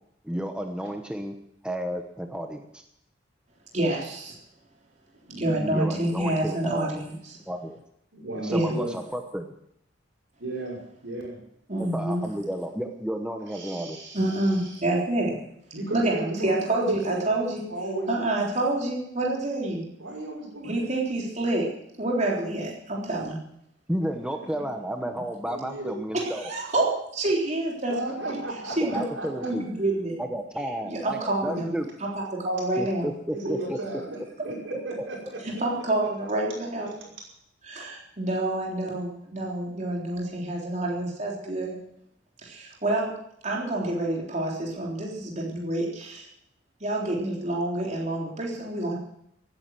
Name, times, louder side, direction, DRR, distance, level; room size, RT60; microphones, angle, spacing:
voice 1, 0.2-1.3 1.6-2.8 5.7-6.9 7.5-7.8 8.4-9.6 11.9-14.0 23.9-26.5 28.8-29.7 30.2-31.9 32.8-33.8, equal, 5° right, 5 dB, 1.0 m, -32 dB
voice 2, 3.7-4.3 5.4-7.1 8.5-8.7 11.7-12.2 14.1-15.4 15.9-17.7 18.1-19.9 20.6-21.7 22.0-23.4 26.2-28.4 28.7-30.2 30.9-31.7 32.0-33.1 35.4-36.9 37.6-41.8 42.4-43.1 43.4-46.3 46.8-48.9, right 2 dB, 40° right, -2 dB, 3.6 m, -28 dB
voice 3, 5.3-6.0 8.1-8.9 10.4-11.4 13.5-14.8 15.7-17.2 17.7-18.2 20.0-20.9 25.4-26.0 27.9-29.5 30.6-30.7 31.5-31.6 33.3-36.3 37.0-37.1, right 2 dB, 80° right, -1 dB, 5.5 m, -35 dB
16.5 x 9.9 x 7.6 m, 0.76 s
head